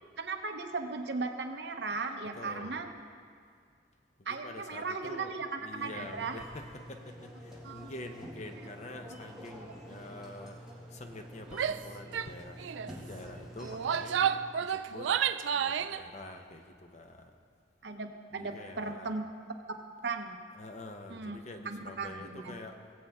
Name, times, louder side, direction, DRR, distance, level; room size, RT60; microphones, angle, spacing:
voice 1, 0.2-2.9 4.3-6.4 7.6-7.9 9.9-10.0 14.2-14.3 17.8-19.3 20.0-20.4 21.1-21.4 21.6-22.6, right 4 dB, 60° right, 5 dB, 0.8 m, -37 dB
voice 2, 2.2-2.9 4.3-10.6 10.9-14.2 14.6-15.1 15.5-17.3 18.3-19.1 20.5-22.8, left 1 dB, 40° left, 5 dB, 0.8 m, -46 dB
sound 1, 5.8-14.4, equal, ahead, 1.8 m, -48 dB
Female speech woman speaking / Yell, 11.5-11.8 12.1-12.3 12.6-12.9 13.6-16.0, right 8 dB, 80° right, 0.4 m, -30 dB
18.5 x 8.0 x 3.6 m, 2.1 s
head